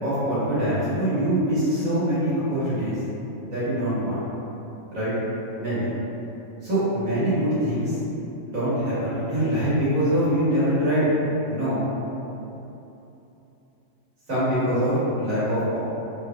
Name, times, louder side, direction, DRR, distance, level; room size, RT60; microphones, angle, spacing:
voice 1, 0.0-3.0 3.4-4.2 4.9-5.1 5.6-5.9 6.6-8.0 8.5-11.1 11.5-11.8 14.3-15.8, right 1 dB, 45° right, -13 dB, 2.0 m, -24 dB
4.5 x 3.5 x 2.3 m, 3.0 s
omnidirectional pair, 2.0 m